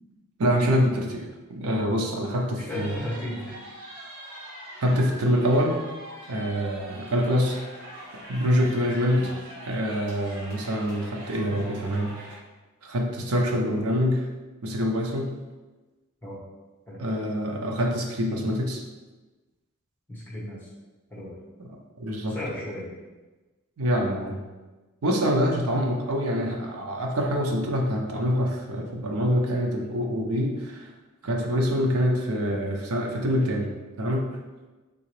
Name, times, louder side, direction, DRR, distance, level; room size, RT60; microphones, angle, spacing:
voice 1, 0.4-3.0 4.8-5.8 6.3-7.6 8.3-9.4 9.7-12.3 12.8-14.3 14.6-15.3 17.0-18.8 21.7-22.4 23.8-24.4 25.0-30.9 31.2-33.7 34.0-34.3, equal, 75° right, 1 dB, 0.6 m, -25 dB
voice 2, 2.7-3.5 9.2-9.3 16.2-16.4 16.9-17.0 20.1-20.7 21.1-21.4 22.3-22.9, left 1 dB, 10° left, -6 dB, 1.0 m, -35 dB
sound 1, 2.7-12.3, right 1 dB, 60° right, 1.3 m, -42 dB
3.8 x 2.9 x 3.1 m, 1.2 s
head